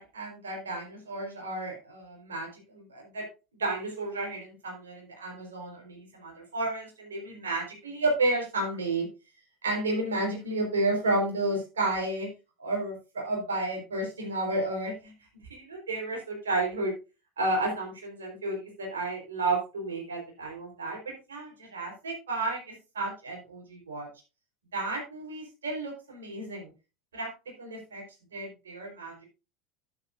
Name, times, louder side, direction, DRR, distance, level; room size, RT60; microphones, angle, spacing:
voice 1, 0.0-3.2 3.6-9.1 9.6-12.3 12.6-15.1 15.5-16.9 17.4-21.0 21.3-24.1 24.7-26.7 27.1-27.3 27.6-28.0 28.3-29.1, right 2 dB, 85° right, 0 dB, 4.1 m, -32 dB
12.0 x 9.8 x 2.5 m, 0.30 s
hypercardioid pair, 75°, 0 cm